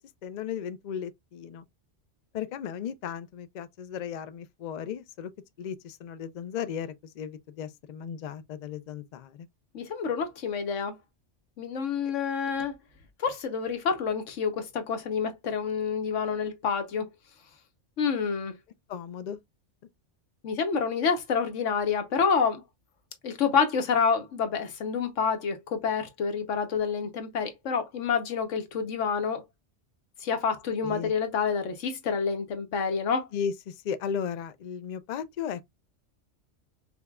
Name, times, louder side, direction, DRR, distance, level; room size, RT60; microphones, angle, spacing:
voice 1, 0.2-1.6 2.3-5.3 5.6-9.5 18.9-19.4 30.8-31.1 33.3-35.6, left 8 dB, 65° left, 0.4 m, -35 dB
voice 2, 9.7-11.0 11.6-12.7 13.2-17.1 18.0-18.5 20.4-22.6 23.2-29.4 30.2-33.3, left 6 dB, 90° left, 1.2 m, -28 dB
5.2 x 2.2 x 2.3 m
omnidirectional pair, 1.2 m